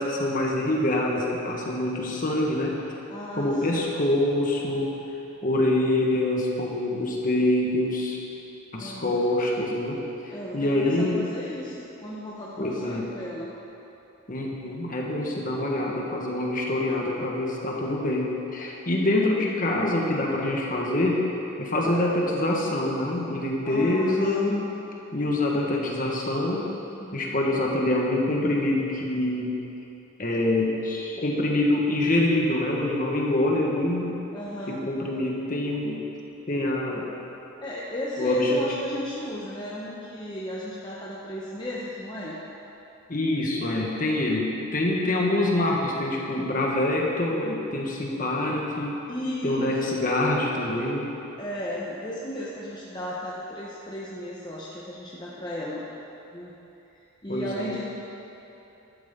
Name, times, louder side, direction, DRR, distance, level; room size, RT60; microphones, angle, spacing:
voice 1, 0.0-2.8 3.4-4.9 5.4-8.2 8.7-11.2 12.6-13.1 14.3-21.2 21.6-24.6 25.1-26.7 27.1-29.6 30.2-34.2 34.7-36.0 36.5-37.1 38.2-38.6 43.1-49.0 49.4-51.1 57.3-57.6, left 1 dB, 40° left, -2 dB, 1.5 m, -25 dB
voice 2, 3.1-3.9 8.8-9.2 10.3-13.6 21.8-22.1 23.6-24.7 27.0-27.3 34.3-34.8 37.6-42.4 49.1-49.8 51.4-55.8 56.3-56.5 57.2-57.8, left 1 dB, 20° left, -6 dB, 0.9 m, -35 dB
12.0 x 12.0 x 3.8 m, 3.0 s
head